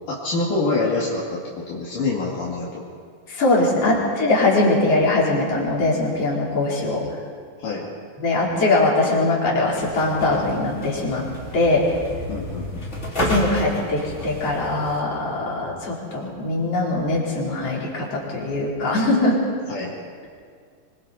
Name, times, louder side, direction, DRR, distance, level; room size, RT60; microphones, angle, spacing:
voice 1, 0.1-2.8 7.6-7.9 12.3-12.9 19.7-19.9, left 3 dB, 65° left, -6 dB, 3.8 m, -26 dB
voice 2, 3.3-7.0 8.2-11.3 11.5-11.9 13.3-19.4, left 2 dB, 40° left, -4 dB, 4.9 m, -21 dB
sound 1, 9.7-15.0, equal, 20° left, 3.1 m, -31 dB
25.5 x 23.5 x 4.3 m, 2.1 s
omnidirectional pair, 4.2 m